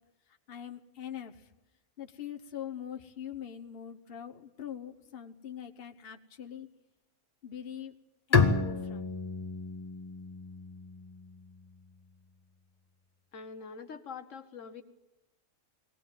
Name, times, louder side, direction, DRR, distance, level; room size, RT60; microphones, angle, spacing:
voice 1, 0.5-1.5 2.0-6.7 7.4-7.9 8.3-9.1, left 9 dB, 50° left, 5 dB, 1.3 m, -43 dB
Bowed string instrument, 8.3-11.8, left 4 dB, 30° left, 1.3 m, -30 dB
voice 2, 13.3-14.8, left 5 dB, 70° left, 8 dB, 1.4 m, -44 dB
22.0 x 17.5 x 9.0 m, 1.0 s
omnidirectional pair, 1.4 m